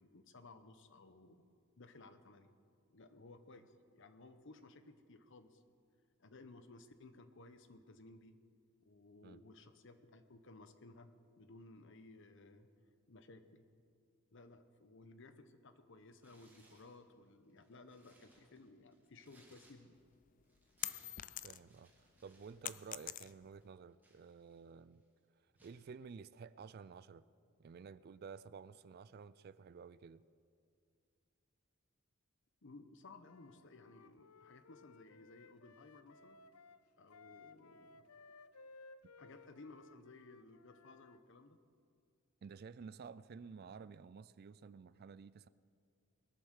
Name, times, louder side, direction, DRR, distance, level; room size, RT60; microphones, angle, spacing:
voice 1, 0.0-1.5 1.8-2.5 2.9-5.6 6.2-8.4 8.8-11.1 11.4-12.7 13.1-13.6 14.3-20.0 32.6-36.4 37.0-38.1 39.2-41.6, left 2 dB, 60° left, 0.9 m, -58 dB
Tearing, 16.2-17.0 17.5-20.1 20.4-22.6 22.8-23.1 23.6-24.8 25.6-25.8, right 1 dB, 10° right, 1.9 m, -69 dB
sound 1, 20.0-21.8 22.2-23.6, left 13 dB, 40° left, 0.3 m, -44 dB
voice 2, 21.4-25.0 25.6-27.2 27.6-30.2 42.4-45.5, right 5 dB, 45° right, 0.3 m, -52 dB
Wind instrument woodwind instrument, 33.2-41.2, left 4 dB, 90° left, 0.6 m, -60 dB
21.0 x 7.8 x 6.5 m
head